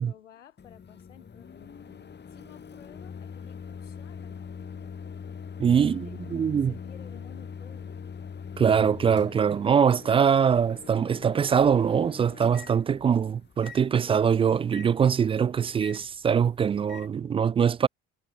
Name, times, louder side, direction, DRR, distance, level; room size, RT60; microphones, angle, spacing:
voice 1, 0.0-4.9 5.7-8.0 13.6-14.5, left 10 dB, 75° left, 6.9 m, -54 dB
Microwave oven, 0.6-17.1, left 6 dB, 30° left, 1.9 m, -43 dB
voice 2, 5.6-6.7 8.6-17.9, right 7 dB, 15° right, 0.3 m, -23 dB
figure-of-eight pair, 50°, 37 cm